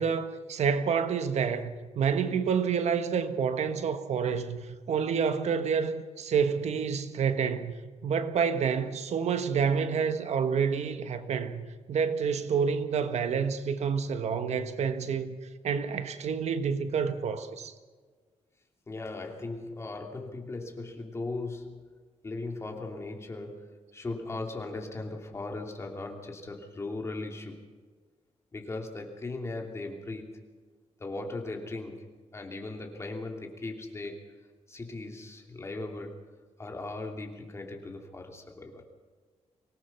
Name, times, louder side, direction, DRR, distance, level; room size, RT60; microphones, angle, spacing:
voice 1, 0.0-4.6 4.9-7.8 8.0-15.4 15.6-17.7, right 6 dB, 75° right, 1.5 m, -28 dB
voice 2, 18.9-21.9 22.2-27.7 28.5-30.4 31.0-32.1 32.3-34.3 34.7-36.1 36.6-38.8, left 2 dB, 25° left, 2.9 m, -38 dB
24.5 x 18.5 x 6.0 m
wide cardioid pair, 165°, 12 cm